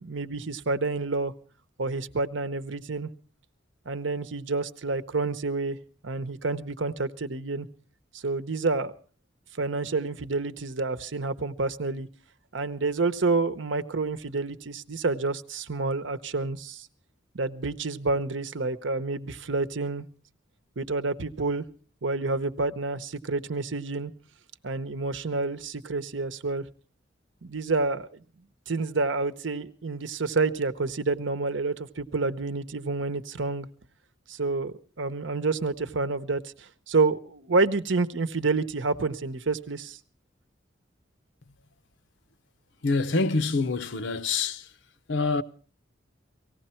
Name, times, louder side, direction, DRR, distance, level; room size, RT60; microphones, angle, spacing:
voice 1, 0.0-1.3 1.8-3.1 3.9-5.8 6.0-7.7 8.1-8.9 9.6-12.1 12.5-16.9 17.3-20.0 20.8-21.6 22.0-24.1 24.6-26.7 27.4-28.1 28.7-33.7 34.3-40.0, right 3 dB, 75° right, 0.9 m, -28 dB
voice 2, 42.8-44.6 45.1-45.4, left 3 dB, 70° left, 0.8 m, -26 dB
18.5 x 15.5 x 4.4 m
head